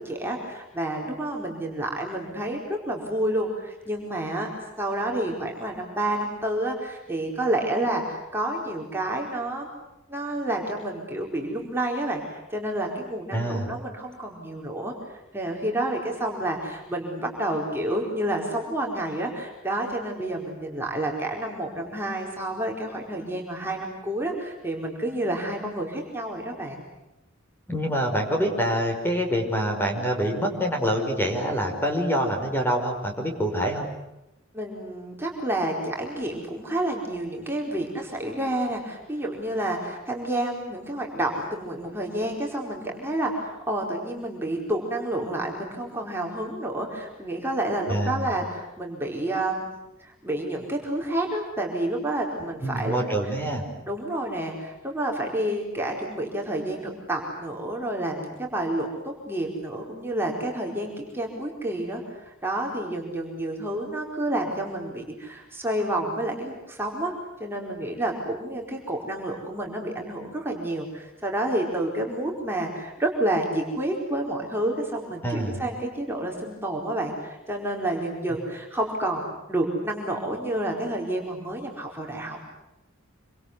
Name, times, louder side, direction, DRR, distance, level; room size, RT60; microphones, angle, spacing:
voice 1, 0.0-4.5 4.8-9.7 10.1-14.9 15.3-26.9 34.5-49.6 50.0-53.0 53.9-67.1 67.4-82.5, right 1 dB, 10° right, 0 dB, 4.7 m, -29 dB
voice 2, 13.3-13.7 27.7-33.9 47.9-48.3 52.6-53.6 75.2-75.6, equal, 10° left, 3 dB, 5.4 m, -26 dB
28.0 x 26.0 x 8.2 m, 0.91 s
head